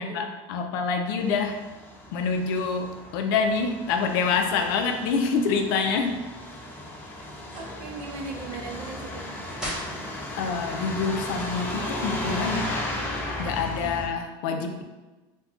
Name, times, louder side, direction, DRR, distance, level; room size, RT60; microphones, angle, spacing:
voice 1, 0.0-1.6 2.1-6.2 10.4-12.8 13.4-14.8, left 5 dB, 80° left, 5 dB, 0.4 m, -26 dB
Truck, 1.2-14.1, left 1 dB, 15° left, 0.4 m, -35 dB
sound 1, 7.5-7.8 9.5-10.0 11.2-12.2, equal, 5° right, 0.9 m, -37 dB
voice 2, 7.5-9.5 13.8-14.0, right 4 dB, 55° right, 1 dB, 0.6 m, -38 dB
2.4 x 2.2 x 3.6 m, 1.2 s
cardioid pair, 140°, 11 cm